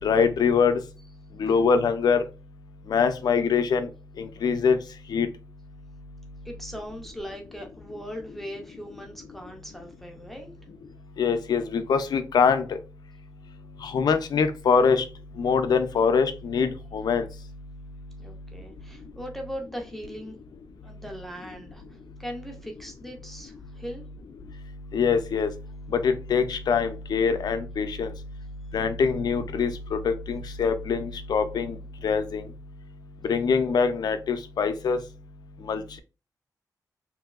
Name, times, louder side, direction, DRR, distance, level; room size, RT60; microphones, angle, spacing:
voice 1, 0.0-0.8 1.4-2.2 2.9-3.9 4.2-4.8 5.1-5.3 11.2-12.6 13.8-15.0 15.4-17.2 24.9-25.5 26.0-28.1 28.7-31.7 32.0-32.4 33.3-35.0 35.7-36.0, left 5 dB, 75° left, 9 dB, 0.4 m, -23 dB
voice 2, 6.4-10.5 18.2-20.4 20.8-24.1, equal, 5° left, 2 dB, 0.4 m, -39 dB
3.0 x 2.6 x 2.3 m, 0.31 s
wide cardioid pair, 180°, 7 cm